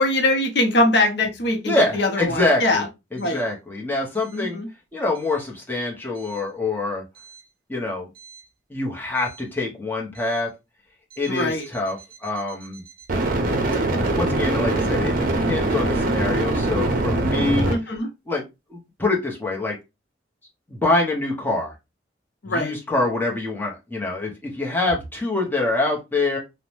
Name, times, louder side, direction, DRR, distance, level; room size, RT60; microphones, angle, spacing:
voice 1, 0.0-2.9 3.2-3.4 4.3-4.7 11.3-11.7 17.6-18.1 22.4-22.7, left 2 dB, 65° left, 4 dB, 0.6 m, -22 dB
voice 2, 1.7-2.8 3.1-4.6 4.9-7.0 7.7-8.1 8.7-10.5 11.2-12.8 14.1-18.0 18.3-18.4 18.7-19.8 20.7-21.7 22.5-26.4, left 2 dB, 10° left, -2 dB, 0.7 m, -25 dB
sound 1, 8.2-8.4 13.1-17.7, right 2 dB, 50° right, 0.6 m, -22 dB
2.7 x 2.0 x 3.0 m, 0.24 s
head